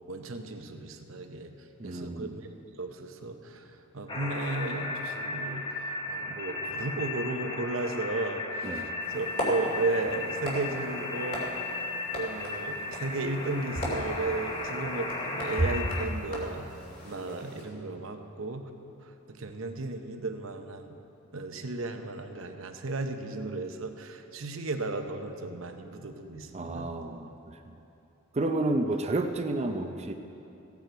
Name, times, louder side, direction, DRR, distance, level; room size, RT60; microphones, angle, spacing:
voice 1, 0.1-2.5 2.8-11.5 12.1-16.7 17.0-18.7 19.0-21.0 21.3-26.9, right 2 dB, 65° right, 6 dB, 0.9 m, -35 dB
voice 2, 1.8-2.3 8.6-8.9 26.5-27.6 28.3-30.1, right 2 dB, 30° right, 5 dB, 0.5 m, -31 dB
sound 1, 4.1-16.1, left 2 dB, 20° left, 0.8 m, -35 dB
sound 2, 9.0-17.6, equal, 40° left, 2.6 m, -36 dB
16.0 x 9.2 x 4.6 m, 2.8 s
head